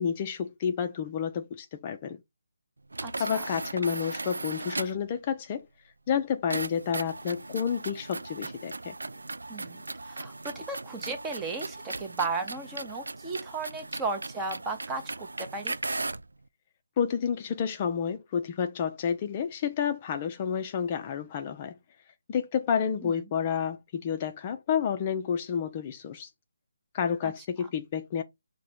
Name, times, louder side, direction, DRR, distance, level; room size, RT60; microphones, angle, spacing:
voice 1, 0.0-2.2 3.2-5.7 6.1-8.9 17.0-21.7 22.3-26.3 26.9-28.2, left 7 dB, 30° left, 0.4 m, -30 dB
sound 1, 2.9-5.1 6.5-16.3, right 2 dB, 85° right, 0.3 m, -37 dB
voice 2, 3.0-3.4 9.5-15.7 23.0-23.1 27.2-27.3, right 3 dB, 10° right, 0.6 m, -35 dB
4.8 x 2.2 x 4.2 m
figure-of-eight pair, 155°, 0 cm